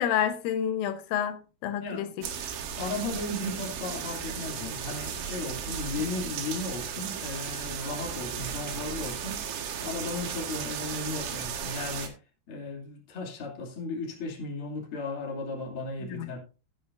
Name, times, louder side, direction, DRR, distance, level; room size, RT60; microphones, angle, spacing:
voice 1, 0.0-2.1 16.0-16.3, left 9 dB, 85° left, 3.6 m, -29 dB
sound 1, 2.2-12.1, right 8 dB, 65° right, 2.4 m, -35 dB
voice 2, 2.7-9.5 9.8-12.1 12.5-16.4, left 3 dB, 35° left, 2.5 m, -35 dB
16.0 x 8.5 x 2.6 m
omnidirectional pair, 5.6 m